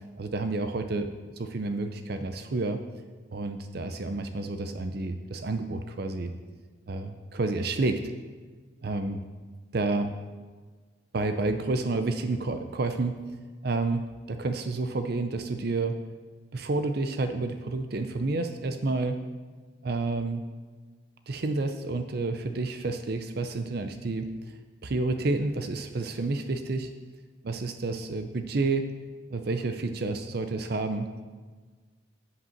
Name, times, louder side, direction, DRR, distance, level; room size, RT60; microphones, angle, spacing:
voice 1, 0.2-2.8 3.3-6.3 6.9-8.0 8.8-9.2 9.7-10.1 11.1-13.2 13.6-14.0 14.3-16.0 16.5-19.2 19.8-20.4 21.3-24.3 24.8-26.9 27.4-28.9 29.3-31.1, right 3 dB, 50° right, 7 dB, 0.5 m, -29 dB
8.1 x 5.4 x 7.1 m, 1.4 s
head